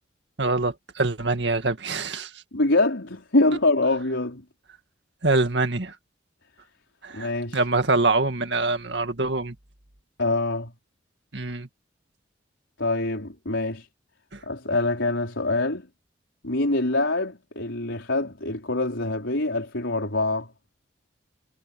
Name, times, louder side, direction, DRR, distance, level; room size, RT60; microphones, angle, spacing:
voice 1, 0.4-2.3 5.2-6.0 7.0-9.6 11.3-11.7 14.3-14.4, right 3 dB, 65° right, 2.0 m, -24 dB
voice 2, 2.5-4.4 7.1-7.6 10.2-10.7 12.8-13.9 14.5-15.9 16.4-20.5, left 2 dB, 90° left, 4.6 m, -25 dB
head